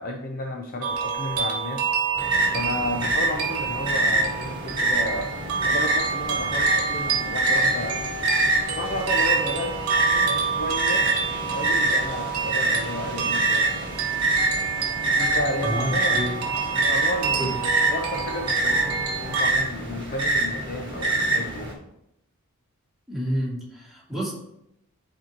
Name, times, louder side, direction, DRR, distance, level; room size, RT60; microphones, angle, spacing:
voice 1, 0.0-1.8 2.5-5.3 5.6-8.0 8.8-14.0 15.0-16.3 16.7-17.6 17.9-21.7, left 1 dB, 40° left, 2 dB, 0.6 m, -32 dB
sound 1, 0.8-19.5, right 5 dB, 80° right, 1.1 m, -28 dB
sound 2, 2.2-21.7, right 2 dB, 20° right, 1.6 m, -25 dB
voice 2, 15.6-16.4 17.4-17.6 23.1-24.3, right 1 dB, ahead, -8 dB, 2.4 m, -29 dB
10.0 x 4.4 x 2.9 m, 0.79 s
head